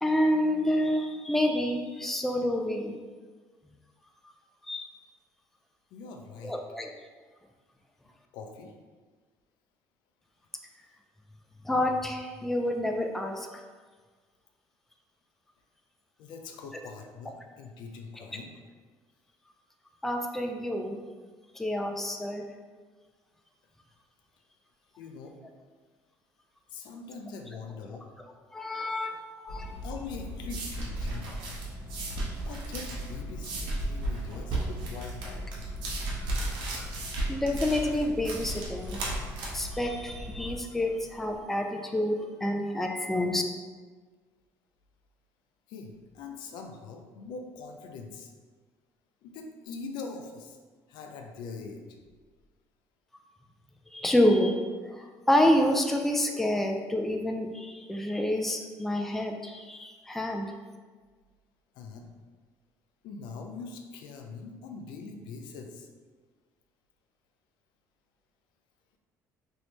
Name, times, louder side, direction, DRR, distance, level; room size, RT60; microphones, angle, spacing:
voice 1, 0.0-2.9 4.6-4.9 6.4-6.9 11.6-13.6 20.0-21.0 21.5-22.5 28.5-29.7 36.1-36.9 37.3-39.0 39.5-43.4 53.9-54.5 54.8-60.5, left 1 dB, 5° left, 3 dB, 0.3 m, -28 dB
voice 2, 5.9-6.5 8.3-8.7 16.2-18.5 25.0-25.4 26.7-28.2 29.8-31.3 32.4-35.5 45.7-48.3 49.2-50.6 50.9-52.0 61.7-62.1 63.0-65.9, left 4 dB, 75° left, 3 dB, 0.4 m, -42 dB
sound 1, 29.5-40.6, equal, 50° left, 1.2 m, -40 dB
sound 2, 30.0-41.3, right 2 dB, 70° right, 0.8 m, -36 dB
2.9 x 2.7 x 3.2 m, 1.5 s
cardioid pair, 105°, 8 cm